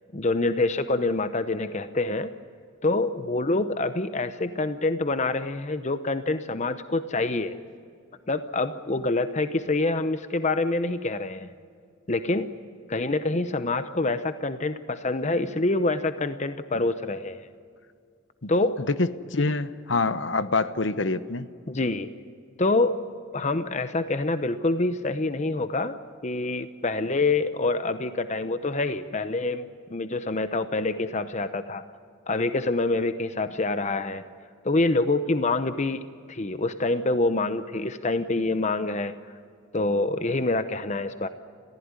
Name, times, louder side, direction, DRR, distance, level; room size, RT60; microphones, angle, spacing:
voice 1, 0.1-2.3 2.8-7.6 8.3-11.5 12.1-12.5 12.9-17.4 18.5-18.8 21.7-22.1 22.6-23.0 23.3-31.8 32.3-34.3 34.6-39.1 39.7-41.3, left 2 dB, 35° left, 11 dB, 0.8 m, -26 dB
voice 2, 18.9-21.5, left 3 dB, 65° left, 12 dB, 0.9 m, -26 dB
30.0 x 15.0 x 9.7 m, 2.2 s
head